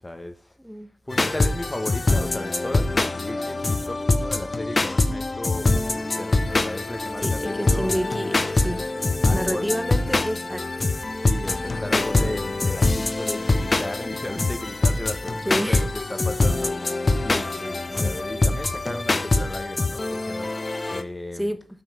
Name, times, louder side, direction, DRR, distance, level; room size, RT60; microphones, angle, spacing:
voice 1, 0.0-0.6 1.0-7.9 9.2-9.7 11.1-20.5 20.9-21.5, left 1 dB, 20° left, 1.1 m, -35 dB
sound 1, 1.1-21.0, left 2 dB, 45° left, 0.8 m, -24 dB
voice 2, 7.2-8.9 9.3-10.9 15.5-15.9 18.0-18.2 21.4-21.6, equal, 5° right, 0.7 m, -29 dB
9.4 x 5.5 x 5.5 m
wide cardioid pair, 80°, 0 cm